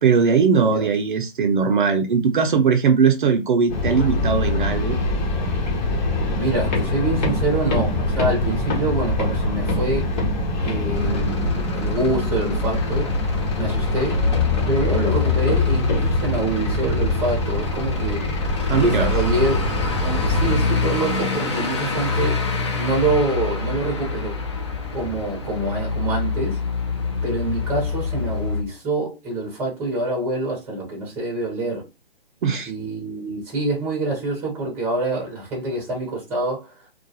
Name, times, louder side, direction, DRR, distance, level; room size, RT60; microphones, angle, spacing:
voice 1, 0.0-5.0 18.7-19.2 32.4-32.7, right 5 dB, 55° right, 0.5 m, -19 dB
voice 2, 0.5-0.9 6.3-10.1 10.6-13.1 13.6-14.3 14.6-18.2 18.7-19.6 20.0-22.4 22.7-24.4 24.9-26.6 27.2-31.8 32.7-36.7, right 2 dB, 5° right, 0.7 m, -26 dB
sound 1, 3.7-20.6, left 2 dB, 50° left, 1.0 m, -23 dB
Truck / Idling, 10.9-28.6, left 3 dB, 30° left, 0.4 m, -27 dB
2.3 x 2.2 x 2.6 m
hypercardioid pair, 150°, 30 cm